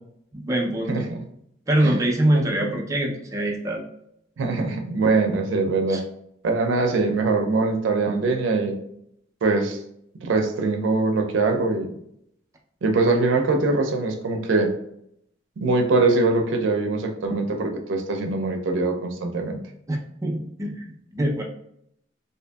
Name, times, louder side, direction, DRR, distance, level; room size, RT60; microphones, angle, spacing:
voice 1, 0.3-1.1 1.7-3.9 5.9-6.0 19.9-21.4, right 1 dB, 15° right, 0 dB, 0.4 m, -24 dB
voice 2, 0.9-1.2 1.8-2.0 2.3-2.7 4.4-6.0 6.4-8.8 9.4-9.8 10.2-11.9 12.8-14.7 15.6-19.6, right 3 dB, 85° right, 4 dB, 0.4 m, -22 dB
2.6 x 2.5 x 2.2 m, 0.73 s
head